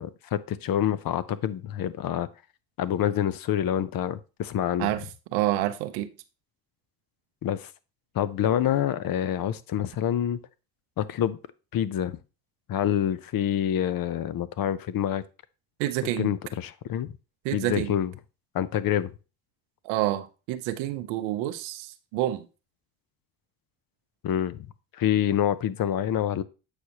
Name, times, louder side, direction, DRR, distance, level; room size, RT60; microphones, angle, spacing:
voice 1, 0.0-2.3 2.8-4.9 7.4-7.7 8.1-10.4 11.0-11.4 11.7-12.2 12.7-15.2 16.2-17.1 17.5-18.1 18.5-19.1 24.2-24.7 25.0-26.4, left 10 dB, 50° left, 0.6 m, -27 dB
voice 2, 5.3-6.1 15.8-16.3 17.4-17.9 19.8-22.4, right 14 dB, 85° right, 0.7 m, -28 dB
8.0 x 4.9 x 2.9 m
supercardioid pair, 65°, 46 cm